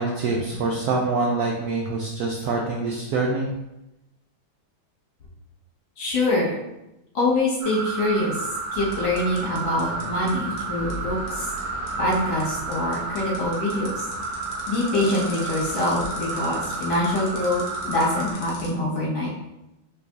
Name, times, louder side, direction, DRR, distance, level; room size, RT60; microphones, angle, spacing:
voice 1, 0.0-3.5, right 3 dB, 90° right, 0 dB, 0.8 m, -25 dB
voice 2, 6.0-6.5 7.1-11.5 12.0-14.1 14.7-19.3, left 1 dB, 80° left, -6 dB, 2.2 m, -25 dB
sound 1, 7.6-18.3, right 3 dB, 65° right, 1.1 m, -32 dB
sound 2, 8.7-18.7, left 1 dB, 55° left, 1.0 m, -40 dB
5.1 x 3.3 x 2.5 m, 0.91 s
omnidirectional pair, 2.2 m